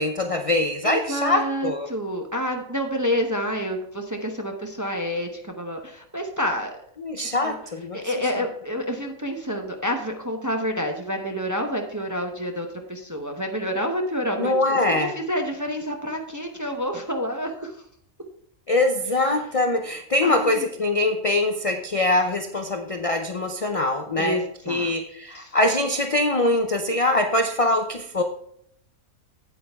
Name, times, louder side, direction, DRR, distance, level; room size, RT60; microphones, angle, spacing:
voice 1, 0.0-1.9 7.0-8.0 14.4-15.1 18.7-28.2, left 2 dB, 45° left, 5 dB, 0.4 m, -23 dB
voice 2, 0.8-6.8 7.2-7.6 7.9-17.8 20.2-20.6 24.2-24.9 25.3-25.6, equal, 20° right, 3 dB, 0.6 m, -28 dB
8.5 x 8.3 x 3.5 m, 0.70 s
omnidirectional pair, 1.5 m